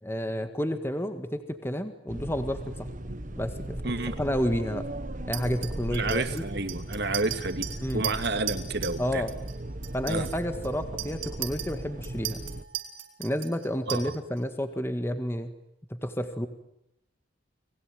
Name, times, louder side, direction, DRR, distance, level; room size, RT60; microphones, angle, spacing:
voice 1, 0.0-2.9 3.4-4.9 5.3-6.5 7.8-8.0 9.0-9.3 9.9-12.4 13.2-15.5 15.9-16.5, equal, 10° left, 8 dB, 1.7 m, -30 dB
sound 1, 2.1-12.6, right 1 dB, 40° right, 1.3 m, -37 dB
voice 2, 3.8-4.2 5.9-9.3 10.1-10.3 13.9-14.1, right 2 dB, 55° right, 9 dB, 2.4 m, -30 dB
Chink clink, 5.3-9.0 9.3-9.6 9.8-14.4, right 13 dB, 85° right, 5.6 m, -37 dB
29.5 x 21.5 x 9.3 m, 0.81 s
head